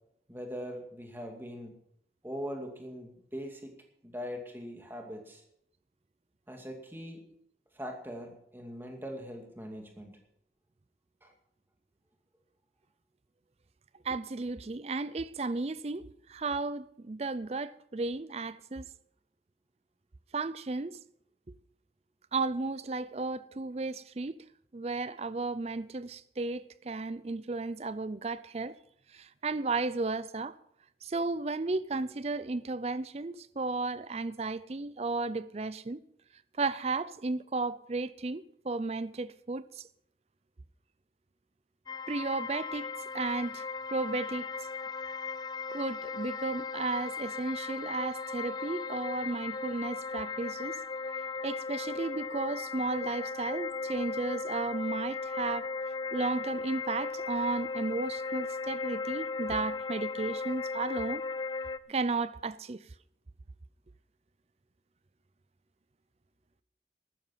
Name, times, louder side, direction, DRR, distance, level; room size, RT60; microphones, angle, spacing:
voice 1, 0.3-1.7 2.2-3.7 4.0-5.4 6.5-7.2 7.7-10.2 11.2-11.3, equal, 10° right, 2.3 m, -41 dB
voice 2, 14.0-18.9 20.3-21.0 22.3-24.4 24.7-28.8 29.1-30.5 31.0-36.0 36.6-39.7 42.1-42.9 43.1-43.7 43.9-44.5 45.7-50.7 51.4-55.7 56.1-61.2 61.9-62.8, right 3 dB, 35° right, 0.5 m, -34 dB
sound 1, 41.9-61.8, left 4 dB, 25° left, 0.4 m, -37 dB
14.0 x 13.0 x 5.7 m
head